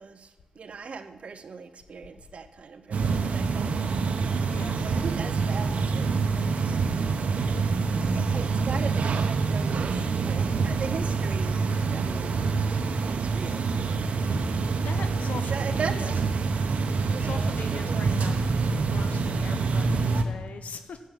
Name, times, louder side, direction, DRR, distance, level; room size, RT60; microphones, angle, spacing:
voice 1, 0.0-6.8 8.1-12.5 13.0-14.5 15.0-16.2 16.8-18.2, right 5 dB, 65° right, 0.8 m, -39 dB
sound 1, 2.9-20.2, right 4 dB, 90° right, 0.9 m, -26 dB
voice 2, 4.5-4.8 13.4-13.5 14.8-16.1 17.2-21.0, left 5 dB, 85° left, 0.7 m, -41 dB
11.5 x 7.4 x 7.4 m
wide cardioid pair, 120°, 2 cm